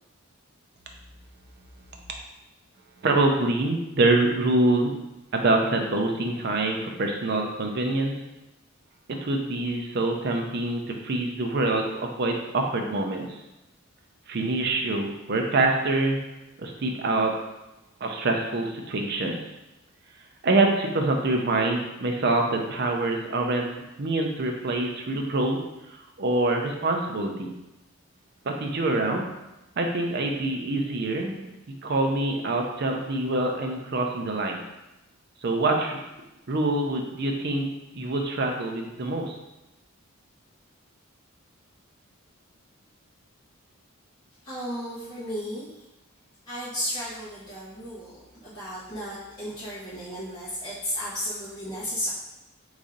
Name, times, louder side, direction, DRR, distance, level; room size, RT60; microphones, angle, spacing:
voice 1, 3.0-4.9 5.3-8.2 9.1-13.4 14.3-16.2 16.6-17.3 18.0-19.4 20.4-23.7 24.0-25.6 26.2-27.5 28.4-29.3 29.8-31.4 31.8-34.6 35.4-36.0 36.5-37.7 37.9-39.4, right 2 dB, 50° right, 2 dB, 0.5 m, -25 dB
voice 2, 44.4-45.8 46.5-52.1, equal, 20° left, -13 dB, 0.9 m, -34 dB
3.2 x 2.6 x 3.6 m, 0.96 s
head